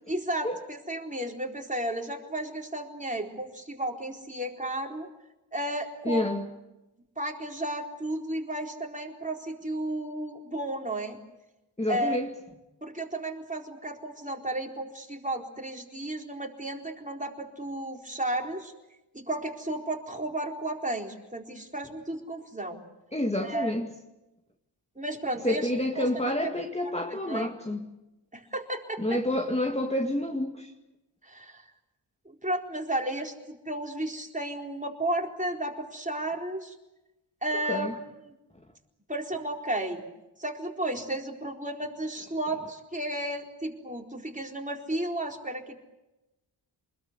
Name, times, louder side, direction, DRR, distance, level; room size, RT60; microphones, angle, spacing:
voice 1, 0.1-5.1 5.5-6.3 7.2-11.2 11.9-12.2 12.8-18.7 19.1-22.8 23.4-23.7 25.0-25.7 26.0-26.1 26.8-27.5 28.3-29.2 31.2-31.6 32.3-36.7 37.4-38.3 39.1-40.0 40.4-45.8, right 1 dB, 15° right, 4.3 m, -33 dB
voice 2, 6.0-6.4 11.8-12.3 23.1-23.9 25.4-27.9 29.0-30.7 37.7-38.0, left 1 dB, 15° left, 2.1 m, -28 dB
28.5 x 21.0 x 8.2 m
wide cardioid pair, 90°, 49 cm